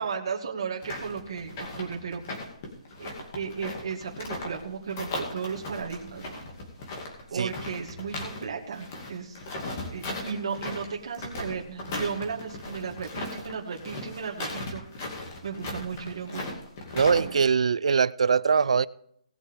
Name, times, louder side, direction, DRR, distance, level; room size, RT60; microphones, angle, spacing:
voice 1, 0.0-2.2 3.0-6.4 7.3-9.4 9.8-14.8 15.4-16.5 17.1-17.3, right 6 dB, 40° right, 2.0 m, -35 dB
sound 1, 0.8-4.6 4.9-8.4 8.7-17.4, left 2 dB, 25° left, 2.3 m, -37 dB
voice 2, 16.9-18.9, right 5 dB, 65° right, 0.5 m, -22 dB
18.5 x 8.1 x 3.7 m
hypercardioid pair, 180°, 4 cm